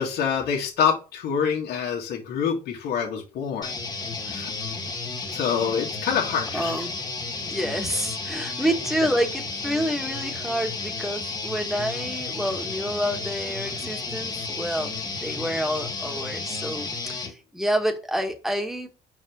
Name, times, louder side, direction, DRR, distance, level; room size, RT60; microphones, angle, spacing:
voice 1, 0.0-3.7 4.3-4.5 5.3-6.8, left 7 dB, 75° left, -1 dB, 1.9 m, -26 dB
sound 1, 3.6-17.3, left 3 dB, 25° left, 1.4 m, -32 dB
voice 2, 6.5-6.9 7.5-14.9 15.2-18.9, equal, ahead, 3 dB, 1.7 m, -28 dB
5.4 x 4.7 x 6.2 m, 0.32 s
cardioid pair, 110°, 17 cm